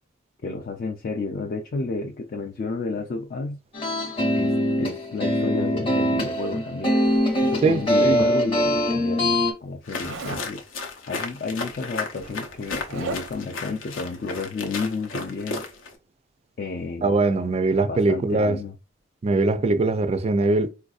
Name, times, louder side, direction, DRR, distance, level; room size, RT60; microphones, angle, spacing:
voice 1, 0.4-3.6 4.4-7.0 7.4-10.7 11.1-15.6 16.6-17.1 17.8-18.8, left 3 dB, 45° left, 0.3 m, -31 dB
sound 1, 3.7-9.5, equal, 25° left, 0.7 m, -22 dB
Zipper (clothing), 7.0-8.7 10.0-10.5 11.6-11.7 12.0-13.5, right 3 dB, 85° right, 0.6 m, -38 dB
voice 2, 7.6-8.3 17.0-18.6 19.2-20.7, right 3 dB, 30° right, 0.3 m, -21 dB
sound 2, 9.8-16.0, left 3 dB, 90° left, 0.7 m, -34 dB
4.0 x 2.6 x 2.3 m
head